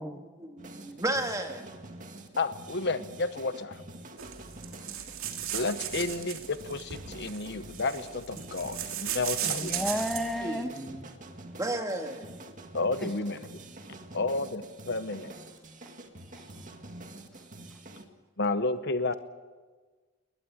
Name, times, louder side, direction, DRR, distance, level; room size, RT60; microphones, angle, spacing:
voice 1, 0.4-1.6 10.4-11.0 11.5-12.4, right 1 dB, 15° right, 2.2 m, -33 dB
sound 1, 0.6-18.0, right 2 dB, 40° right, 2.1 m, -47 dB
voice 2, 2.4-3.7 5.5-10.0 12.7-13.5 14.1-15.3 18.4-19.1, left 3 dB, 55° left, 1.0 m, -31 dB
sound 2, 4.2-10.4, right 10 dB, 80° right, 2.7 m, -36 dB
voice 3, 9.4-10.7 11.3-11.4 13.0-13.1 16.3-16.5 17.3-17.8, equal, ahead, 1.1 m, -34 dB
21.5 x 20.5 x 8.7 m
head